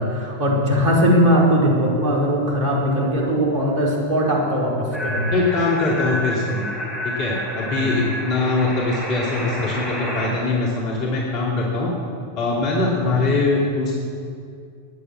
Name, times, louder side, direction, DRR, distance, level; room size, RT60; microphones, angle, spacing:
voice 1, 0.0-5.4 7.8-8.0 13.0-13.2, equal, 40° right, -3 dB, 4.6 m, -20 dB
sound 1, 4.9-10.3, equal, ahead, 3.9 m, -29 dB
voice 2, 5.3-6.7 7.2-11.9 12.4-13.9, left 3 dB, 40° left, -3 dB, 2.7 m, -22 dB
13.5 x 9.8 x 7.8 m, 2.4 s
figure-of-eight pair, 90°, 0 cm